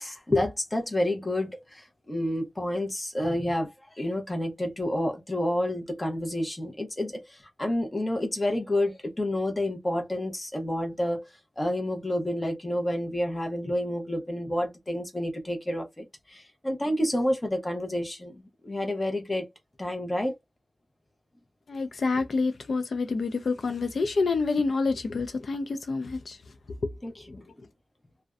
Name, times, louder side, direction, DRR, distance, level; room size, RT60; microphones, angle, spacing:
voice 1, 0.0-11.2 11.6-19.5 19.8-20.3 27.0-27.4, left 1 dB, 20° left, 0.8 m, -29 dB
voice 2, 21.7-26.4, left 4 dB, 70° left, 0.3 m, -27 dB
2.5 x 2.1 x 2.3 m
wide cardioid pair, 125°, 0 cm